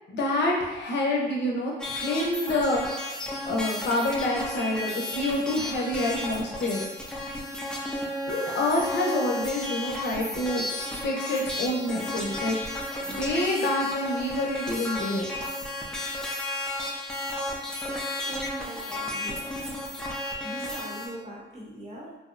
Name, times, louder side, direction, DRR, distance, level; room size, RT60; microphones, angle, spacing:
voice 1, 0.1-3.1 3.4-6.8 8.3-10.6 11.0-12.6 13.2-15.3, left 1 dB, 60° left, -2 dB, 0.6 m, -27 dB
sound 1, 1.8-21.1, left 1 dB, 5° left, 0.4 m, -33 dB
voice 2, 18.3-19.8 20.4-22.2, right 1 dB, 30° right, -4 dB, 0.8 m, -41 dB
2.6 x 2.0 x 2.4 m, 1.1 s
cardioid pair, 90°, 20 cm